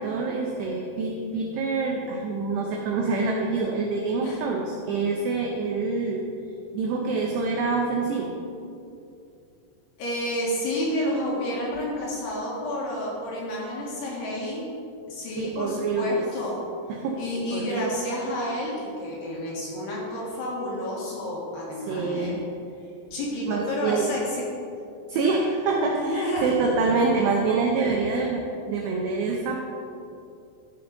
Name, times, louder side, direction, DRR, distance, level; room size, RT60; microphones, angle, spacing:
voice 1, 0.0-6.3 6.7-8.4 15.4-16.2 16.9-17.2 17.5-17.9 21.9-22.4 23.5-24.1 25.1-29.7, right 4 dB, 90° right, 0 dB, 2.4 m, -26 dB
voice 2, 10.0-14.6 15.1-16.6 17.2-22.4 23.1-24.5 25.1-25.2 25.9-26.6, left 1 dB, 65° left, -4 dB, 3.0 m, -30 dB
13.5 x 6.9 x 3.9 m, 2.6 s
omnidirectional pair, 5.9 m